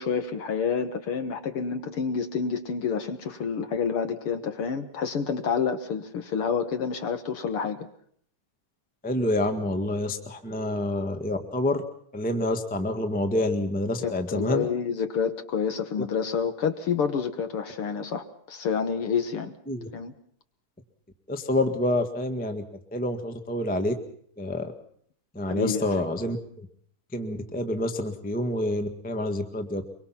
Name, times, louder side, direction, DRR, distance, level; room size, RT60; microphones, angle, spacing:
voice 1, 0.0-7.9 14.0-19.5 19.9-20.1 25.5-26.0, left 6 dB, 55° left, 8 dB, 1.7 m, -28 dB
voice 2, 9.0-11.8 12.1-14.6 19.7-19.9 21.3-22.6 22.9-23.9 24.4-24.7 25.3-26.7 27.1-29.8, left 1 dB, 10° left, 6 dB, 0.4 m, -27 dB
24.0 x 23.5 x 5.9 m, 0.62 s
omnidirectional pair, 3.7 m